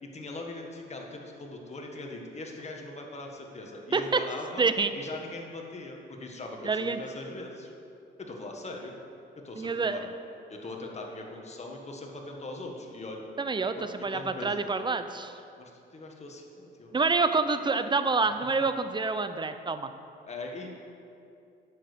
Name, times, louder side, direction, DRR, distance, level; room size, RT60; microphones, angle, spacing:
voice 1, 0.0-4.6 4.9-7.7 8.2-8.9 9.4-10.1 10.5-13.2 13.8-14.6 15.6-17.1 20.2-20.7, left 2 dB, 35° left, 1 dB, 1.6 m, -41 dB
voice 2, 4.6-4.9 6.6-7.0 9.6-10.1 13.4-13.8 14.0-15.3 16.9-19.9, right 4 dB, 25° right, 10 dB, 0.6 m, -27 dB
9.4 x 6.5 x 6.8 m, 2.6 s
cardioid pair, 90°, 20 cm